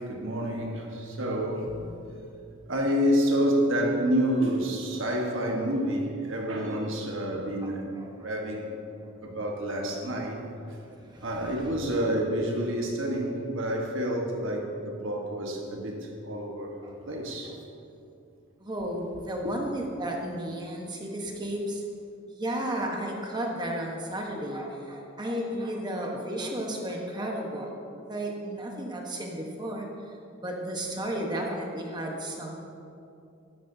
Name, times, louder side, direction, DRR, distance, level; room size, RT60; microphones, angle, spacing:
voice 1, 0.0-1.7 2.7-8.7 9.2-10.4 11.2-16.0 16.2-16.7 17.1-17.5, equal, 65° right, 1.3 m, -28 dB
voice 2, 7.6-8.3 10.7-11.7 16.8-17.5 18.6-21.8 22.3-29.9 30.4-32.6, right 1 dB, 20° right, 1.1 m, -34 dB
12.5 x 10.5 x 2.7 m
head